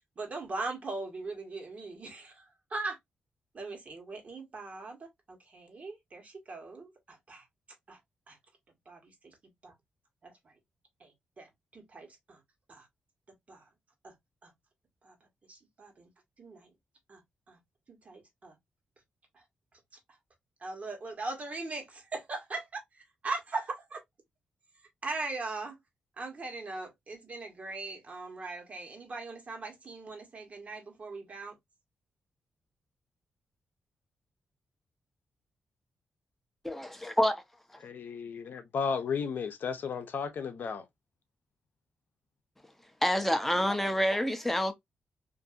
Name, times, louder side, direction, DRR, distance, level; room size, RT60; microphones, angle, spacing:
voice 1, 0.1-3.0 3.5-7.5 7.9-8.0 8.3-8.4 8.7-9.7 10.2-10.5 11.0-12.4 12.7-12.9 13.5-13.7 14.0-14.1 14.4-14.5 15.0-16.1 16.4-16.7 17.1-17.2 17.5-17.6 17.9-18.6 19.3-19.4 19.7-19.8 20.1-20.2 20.6-24.0 24.7-25.8 26.2-31.6, right 3 dB, 45° right, 1.3 m, -40 dB
voice 2, 36.6-37.4 43.0-44.7, equal, 5° left, 0.6 m, -27 dB
voice 3, 37.8-40.8, left 6 dB, 70° left, 0.6 m, -34 dB
2.6 x 2.6 x 2.4 m
cardioid pair, 80°, 3 cm